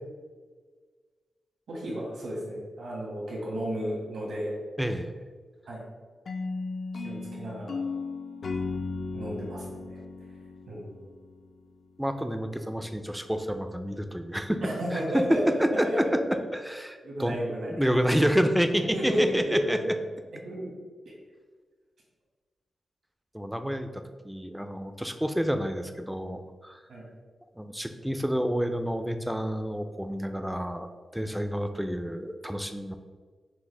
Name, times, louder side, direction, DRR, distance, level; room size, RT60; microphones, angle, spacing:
voice 1, 1.7-4.5 5.7-5.8 6.9-7.8 9.1-10.0 10.7-10.9 14.6-16.1 17.0-17.7 18.9-20.0 20.4-20.7 26.9-27.0, equal, 85° right, -4 dB, 1.4 m, -32 dB
voice 2, 4.8-5.1 12.0-19.8 23.3-26.8 27.6-30.9 31.1-33.0, equal, 5° right, 7 dB, 0.3 m, -29 dB
sound 1, 6.3-11.4, left 3 dB, 60° left, 0.4 m, -35 dB
6.0 x 2.1 x 3.2 m, 1.5 s
cardioid pair, 80°, 0 cm